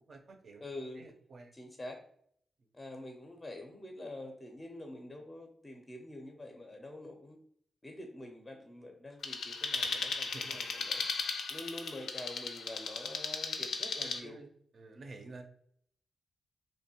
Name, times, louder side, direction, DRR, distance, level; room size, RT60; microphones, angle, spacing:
voice 1, 0.1-0.6 0.9-1.5 10.3-10.6 14.2-15.4, right 3 dB, 55° right, 4 dB, 0.4 m, -50 dB
voice 2, 0.6-1.0 1.5-2.0 2.7-7.4 7.8-11.0 11.5-14.4, left 1 dB, 20° left, 3 dB, 0.4 m, -46 dB
sound 1, 9.2-14.2, left 4 dB, 80° left, 0.4 m, -36 dB
2.9 x 2.1 x 2.8 m, 0.64 s
cardioid pair, 90°, 0 cm